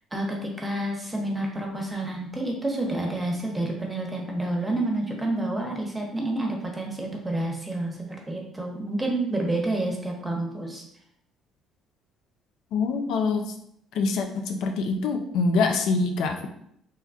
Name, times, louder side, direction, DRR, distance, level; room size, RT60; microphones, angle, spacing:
voice 1, 0.1-7.9 8.3-10.8, right 1 dB, 15° right, 1 dB, 0.9 m, -29 dB
voice 2, 12.7-13.5 14.0-16.5, left 4 dB, 65° left, 5 dB, 0.3 m, -25 dB
3.2 x 2.2 x 2.4 m, 0.70 s
hypercardioid pair, 55°, 0 cm